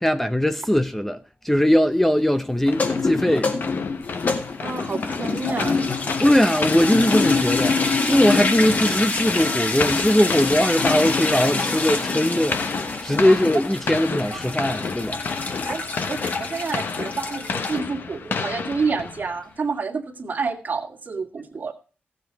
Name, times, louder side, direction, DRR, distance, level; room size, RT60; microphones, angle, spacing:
voice 1, 0.0-3.6 6.2-7.8 8.1-12.6 13.0-15.2, equal, 5° left, 0.6 m, -20 dB
sound 1, 2.7-19.4, left 5 dB, 60° left, 1.1 m, -31 dB
sound 2, 2.7-17.8, left 3 dB, 45° left, 1.9 m, -26 dB
voice 2, 4.6-6.1 13.3-13.4 14.3-14.4 15.6-15.8 16.1-21.7, right 4 dB, 50° right, 1.9 m, -29 dB
15.0 x 7.4 x 4.5 m
cardioid pair, 90°, 4 cm